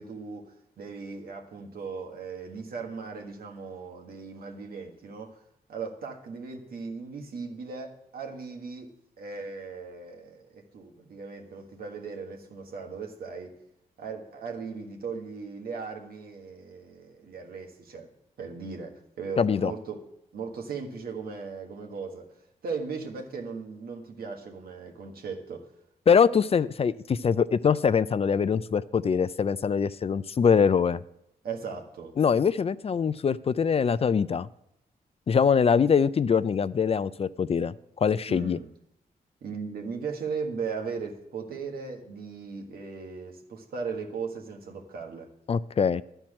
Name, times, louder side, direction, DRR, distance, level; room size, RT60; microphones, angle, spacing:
voice 1, 0.0-5.4 5.7-8.9 9.2-13.5 14.0-18.1 18.4-20.0 20.3-22.3 22.6-25.7 31.4-32.1 38.3-38.7 39.4-45.3, right 5 dB, 80° right, 2 dB, 1.6 m, -37 dB
voice 2, 19.4-19.7 26.1-31.0 32.2-34.5 35.3-38.6 45.5-46.0, left 6 dB, 40° left, 16 dB, 0.4 m, -23 dB
11.5 x 4.5 x 7.3 m, 0.81 s
cardioid pair, 75°, 15 cm